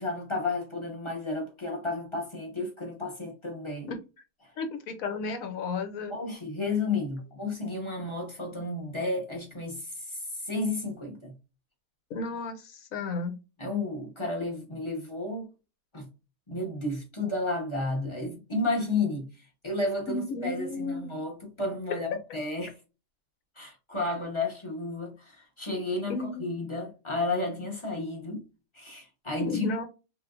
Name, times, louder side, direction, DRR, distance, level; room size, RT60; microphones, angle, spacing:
voice 1, 0.0-3.9 4.4-4.5 6.1-11.4 13.6-15.5 15.9-16.1 16.5-22.8 23.5-28.4 28.7-29.7, left 2 dB, 25° left, 0.8 m, -32 dB
voice 2, 4.6-6.1 12.1-13.4 20.1-21.1 26.1-26.5 29.5-29.8, left 3 dB, 65° left, 1.1 m, -33 dB
3.4 x 2.9 x 2.3 m
omnidirectional pair, 1.7 m